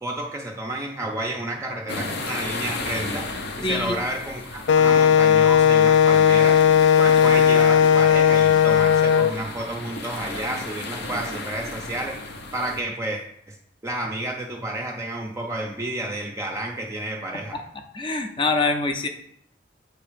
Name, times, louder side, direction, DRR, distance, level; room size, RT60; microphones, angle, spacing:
voice 1, 0.0-6.6 7.0-13.6 13.8-17.6, right 1 dB, 15° right, 0 dB, 0.5 m, -31 dB
sound 1, 1.9-12.8, left 3 dB, 60° left, 0.7 m, -34 dB
voice 2, 3.6-4.0 17.5-17.6 17.9-19.1, left 3 dB, 25° left, 6 dB, 0.6 m, -24 dB
Wind instrument woodwind instrument, 4.7-9.3, left 8 dB, 80° left, 0.3 m, -16 dB
8.0 x 2.9 x 5.0 m, 0.70 s
head